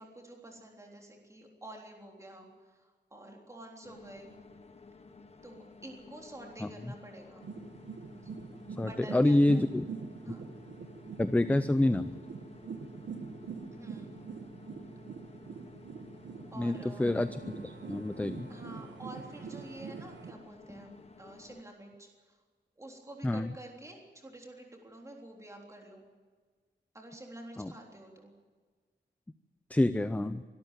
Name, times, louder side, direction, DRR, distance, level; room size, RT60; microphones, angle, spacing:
voice 1, 0.0-4.3 5.4-7.5 8.2-8.3 8.8-9.6 10.3-10.4 13.7-14.1 16.5-17.1 18.5-22.4 22.8-26.0 26.9-28.3, right 1 dB, 15° right, 1 dB, 3.5 m, -49 dB
sound 1, 3.8-21.6, left 4 dB, 35° left, 1.4 m, -54 dB
sound 2, 7.4-20.3, right 5 dB, 90° right, 1.7 m, -44 dB
voice 2, 8.8-9.9 10.3-10.4 11.2-12.2 16.6-18.5 23.2-23.5 27.6-27.7 29.7-30.4, left 1 dB, 10° left, 12 dB, 0.5 m, -27 dB
24.0 x 13.0 x 9.2 m, 1.5 s
wide cardioid pair, 175°, 18 cm